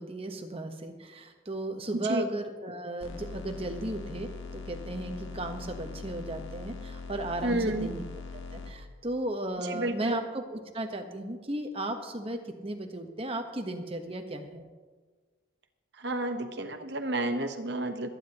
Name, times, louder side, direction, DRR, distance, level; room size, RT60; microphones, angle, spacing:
voice 1, 0.0-8.0 8.5-14.6, right 1 dB, 30° right, 5 dB, 1.1 m, -35 dB
voice 2, 1.9-2.2 7.4-7.9 9.6-10.3 16.0-18.1, right 2 dB, 55° right, 6 dB, 1.1 m, -31 dB
sound 1, 3.0-8.7, left 4 dB, 80° left, 1.3 m, -41 dB
26.5 x 9.7 x 3.0 m, 1.4 s
head